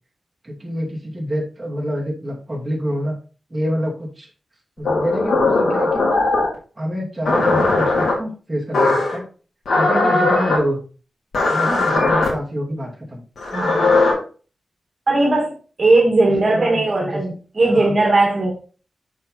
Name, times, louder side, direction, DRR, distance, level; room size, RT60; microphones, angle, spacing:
voice 1, 0.4-3.2 3.5-4.3 4.8-6.1 6.8-9.3 9.7-10.8 11.5-13.2 16.2-17.2 17.7-17.9, equal, 15° right, -3 dB, 2.5 m, -26 dB
sound 1, 4.8-6.5 7.2-8.1 8.7-9.2 9.6-10.6 11.3-12.3 13.4-14.1, left 3 dB, 80° left, 3.0 m, -18 dB
voice 2, 13.5-14.0 15.1-18.5, right 2 dB, 45° right, 0 dB, 2.0 m, -18 dB
6.5 x 5.4 x 4.1 m, 0.37 s
wide cardioid pair, 90°, 0 cm